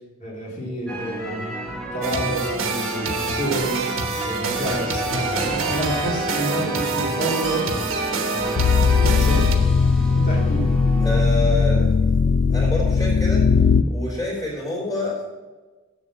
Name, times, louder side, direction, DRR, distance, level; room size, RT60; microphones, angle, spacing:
voice 1, 0.2-1.5 1.9-3.9 4.2-7.8 8.3-9.6 10.1-10.8, right 1 dB, 40° left, -4 dB, 2.9 m, -29 dB
sound 1, 0.9-11.2, equal, 5° left, 1.4 m, -31 dB
sound 2, 2.0-9.6, right 4 dB, 75° right, 1.2 m, -27 dB
sound 3, 8.6-13.8, left 5 dB, 70° left, 0.5 m, -18 dB
voice 2, 11.0-12.0 12.5-13.4 13.9-15.2, left 2 dB, 20° left, -5 dB, 3.6 m, -27 dB
7.9 x 7.3 x 7.4 m, 1.3 s
head